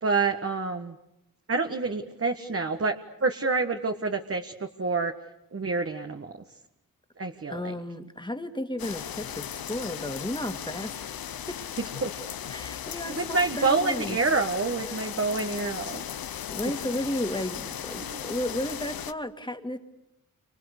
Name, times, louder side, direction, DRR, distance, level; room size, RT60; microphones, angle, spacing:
voice 1, 0.0-1.0 1.5-5.2 5.5-6.3 7.2-7.7 11.4-11.5 12.0-12.1 13.1-16.4 18.0-18.2, right 3 dB, 40° right, 4 dB, 1.6 m, -28 dB
voice 2, 7.5-11.6 12.5-14.2 14.9-15.0 16.5-19.8, left 1 dB, 15° left, 7 dB, 2.2 m, -33 dB
sound 1, 8.8-19.1, left 9 dB, 85° left, 0.9 m, -37 dB
29.5 x 26.0 x 6.7 m, 0.86 s
cardioid pair, 70°, 35 cm